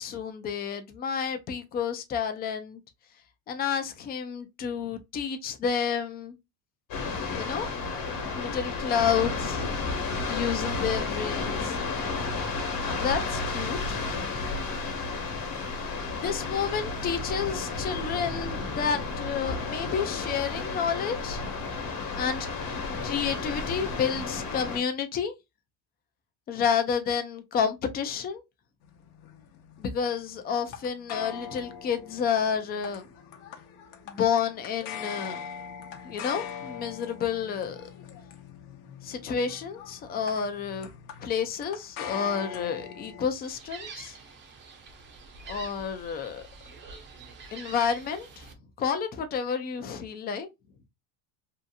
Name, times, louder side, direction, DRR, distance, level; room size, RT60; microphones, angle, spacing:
voice 1, 0.0-2.8 3.5-6.4 7.3-7.7 8.3-9.7 10.3-11.8 13.0-14.7 16.1-21.5 22.1-22.5 23.0-25.3 26.5-28.4 29.8-33.1 34.1-35.4 36.0-37.8 39.0-40.9 41.2-44.2 45.5-46.5 47.5-48.5 48.8-50.5, left 7 dB, 25° left, 0.4 m, -30 dB
sound 1, 6.9-24.8, left 3 dB, 50° left, 1.1 m, -32 dB
sound 2, 28.8-43.3, left 7 dB, 65° left, 0.8 m, -42 dB
Gull seagull, 43.4-48.5, right 4 dB, 30° right, 0.6 m, -46 dB
2.7 x 2.5 x 2.2 m
cardioid pair, 145°, 40 cm